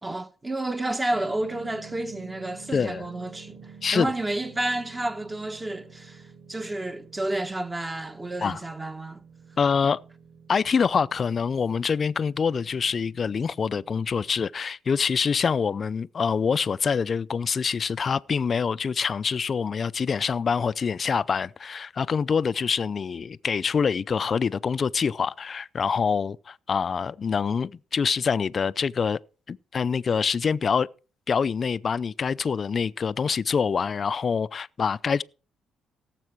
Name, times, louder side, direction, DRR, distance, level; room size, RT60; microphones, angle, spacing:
voice 1, 0.0-9.2, right 2 dB, 20° right, 1.4 m, -31 dB
sound 1, 1.1-14.3, right 5 dB, 85° right, 3.6 m, -49 dB
voice 2, 2.7-3.0 3.8-4.1 8.4-8.6 9.6-10.0 10.5-29.2 29.5-30.9 31.3-35.2, left 6 dB, 45° left, 0.5 m, -25 dB
17.0 x 7.6 x 4.6 m
cardioid pair, 90°, 0 cm